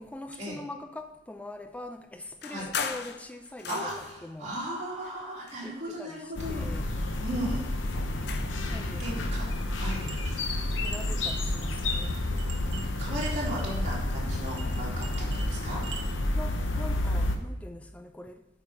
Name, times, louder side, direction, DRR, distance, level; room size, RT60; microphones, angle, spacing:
voice 1, 0.0-3.9 4.2-4.5 5.6-6.9 8.7-9.1 10.8-12.1 16.4-18.5, left 2 dB, 5° left, 0.4 m, -43 dB
sound 1, 2.4-4.3 5.0-6.1 6.4-8.7, left 6 dB, 55° left, 0.6 m, -39 dB
voice 2, 3.7-6.7 7.2-7.7 9.0-10.1 12.6-15.8, equal, 35° right, 2.6 m, -36 dB
sound 2, 6.4-17.4, left 1 dB, 70° left, 0.9 m, -30 dB
sound 3, 9.9-16.1, right 6 dB, 65° right, 1.0 m, -46 dB
8.5 x 5.4 x 4.8 m
head